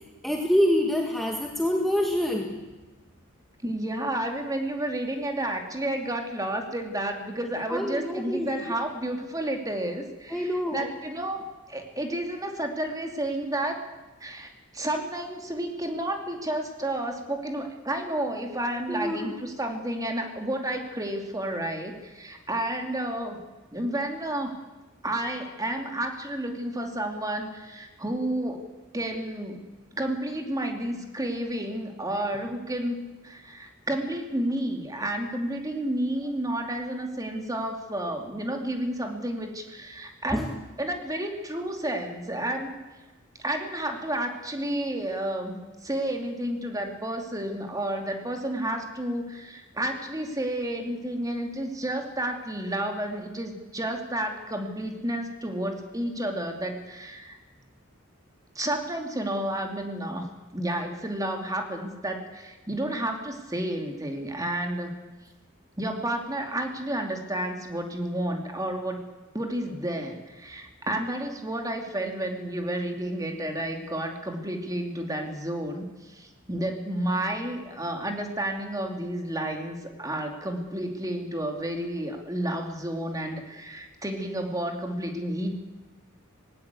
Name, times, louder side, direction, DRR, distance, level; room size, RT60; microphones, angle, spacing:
voice 1, 0.2-2.6 7.7-8.5 10.3-10.9 18.9-19.3 40.3-40.5, equal, ahead, 0 dB, 1.7 m, -26 dB
voice 2, 3.6-13.8 14.2-23.4 23.7-24.6 25.0-28.7 28.9-29.6 30.0-42.8 43.4-57.4 58.5-60.3 60.5-65.0 65.8-69.1 69.3-85.5, right 1 dB, 15° right, 3 dB, 2.6 m, -31 dB
19.5 x 18.0 x 8.4 m, 1.2 s
head